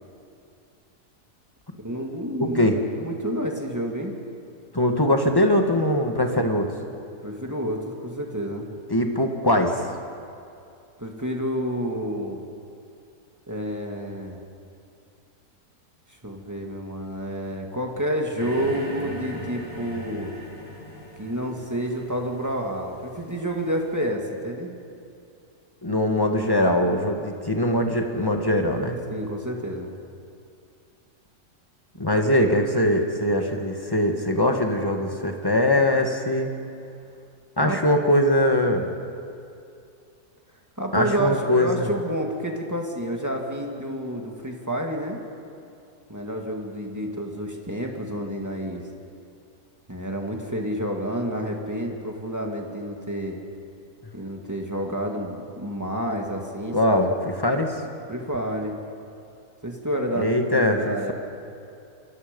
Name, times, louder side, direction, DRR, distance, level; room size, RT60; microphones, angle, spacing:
voice 1, 1.8-2.7 3.0-4.1 7.2-8.7 11.0-12.4 13.5-14.4 16.2-20.3 21.2-24.7 29.1-29.9 37.6-37.8 40.8-45.2 46.1-48.9 49.9-53.4 54.1-56.8 58.1-58.8 59.6-60.3 60.5-61.1, equal, 10° right, 1 dB, 2.3 m, -29 dB
voice 2, 2.4-2.8 4.7-6.7 8.9-9.8 25.8-29.0 32.0-36.5 37.6-38.9 40.9-41.9 56.7-57.8 60.2-61.1, left 1 dB, 15° left, 3 dB, 1.7 m, -22 dB
sound 1, 18.4-24.0, equal, 55° left, 5.0 m, -40 dB
28.0 x 23.0 x 5.5 m, 2.5 s
omnidirectional pair, 1.7 m